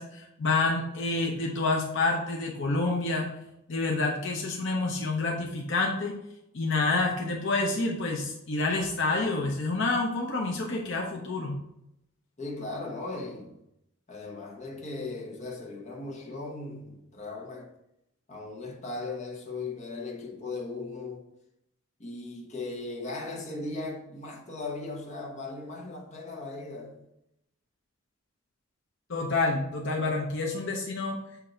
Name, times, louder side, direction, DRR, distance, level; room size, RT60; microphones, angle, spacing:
voice 1, 0.0-3.3 3.7-6.2 6.5-11.6 29.1-31.2, left 3 dB, 60° left, 0.8 m, -28 dB
voice 2, 12.4-13.6 14.1-17.7 18.3-21.2 22.0-27.1, left 3 dB, 35° left, 1.1 m, -38 dB
8.0 x 2.7 x 4.3 m
head